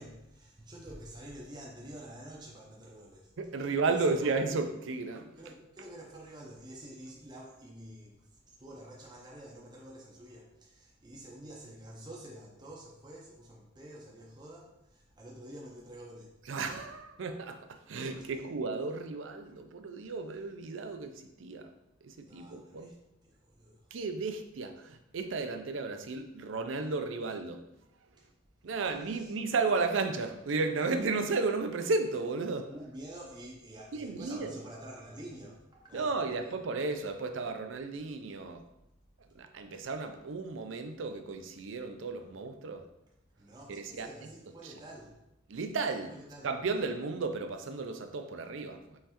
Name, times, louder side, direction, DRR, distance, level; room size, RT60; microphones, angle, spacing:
voice 1, 0.0-3.3 4.2-4.3 5.4-16.4 18.2-18.3 22.2-23.0 23.2-23.8 28.2-28.3 29.1-29.3 32.7-36.5 43.4-45.2 46.1-46.5, right 1 dB, 20° right, -3 dB, 0.5 m, -48 dB
voice 2, 3.4-5.4 16.5-21.7 22.0-22.9 23.9-27.6 28.6-32.7 33.9-34.5 35.9-38.6 39.3-42.8 43.7-44.1 44.6-44.7 45.5-46.1 46.4-49.0, right 3 dB, 70° right, 7 dB, 0.5 m, -34 dB
5.5 x 3.2 x 2.9 m, 0.86 s
head